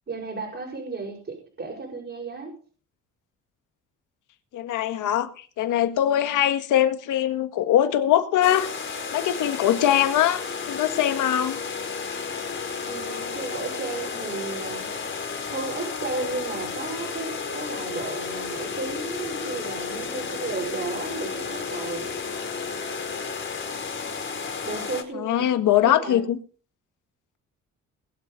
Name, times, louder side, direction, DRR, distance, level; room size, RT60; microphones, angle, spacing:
voice 1, 0.1-2.5 12.9-14.9 15.5-22.1 24.6-25.5 25.8-26.2, right 3 dB, 35° right, 6.3 m, -34 dB
voice 2, 4.5-11.6 25.1-26.4, left 11 dB, 80° left, 1.8 m, -22 dB
sound 1, 8.4-25.0, left 5 dB, 40° left, 4.7 m, -32 dB
21.5 x 8.1 x 5.3 m
cardioid pair, 90°, 30 cm